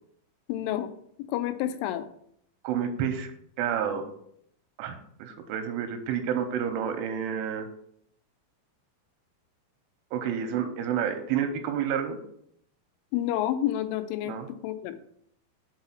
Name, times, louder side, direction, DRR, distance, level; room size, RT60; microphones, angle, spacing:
voice 1, 0.5-0.9 1.2-2.1 13.1-14.4 14.6-15.0, left 12 dB, 85° left, 10 dB, 3.0 m, -29 dB
voice 2, 2.6-3.3 3.6-4.1 4.8-7.7 10.1-12.2 14.3-14.5, right 8 dB, 90° right, 6 dB, 3.3 m, -29 dB
5.6 x 5.6 x 6.0 m, 0.68 s
omnidirectional pair, 5.6 m